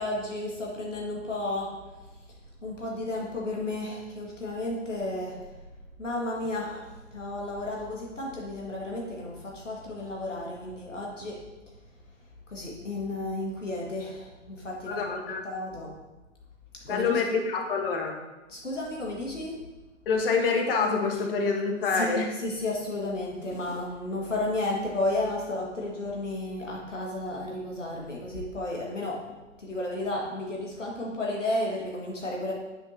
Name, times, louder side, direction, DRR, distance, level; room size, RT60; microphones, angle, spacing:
voice 1, 0.0-1.8 2.6-5.4 6.0-11.4 12.5-15.9 16.9-17.2 18.5-19.6 21.9-22.1 22.4-29.3 29.6-32.5, left 2 dB, 80° left, -3 dB, 1.9 m, -33 dB
voice 2, 14.8-15.4 16.8-18.2 20.1-22.3, left 4 dB, 50° left, 3 dB, 1.3 m, -26 dB
8.9 x 7.6 x 2.8 m, 1.1 s
figure-of-eight pair, 110°, 37 cm